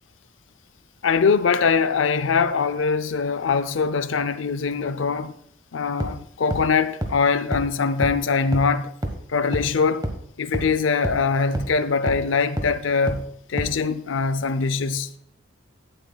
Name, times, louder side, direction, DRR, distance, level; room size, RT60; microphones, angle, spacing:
voice 1, 1.0-5.3 5.7-9.0 9.3-10.0 10.4-15.1, left 5 dB, 80° left, 0.6 m, -22 dB
sound 1, 6.0-6.1 6.5-6.6 7.0-7.1 7.5-7.6 8.0-8.1 8.5-8.6 9.0-9.1 9.5-9.6 10.0-10.1 10.5-10.6 11.0-11.1 11.5-11.6 12.1-12.2 12.6-12.7 13.1-13.2 13.6-13.7, right 1 dB, 20° right, 1.3 m, -26 dB
17.5 x 7.9 x 2.3 m
head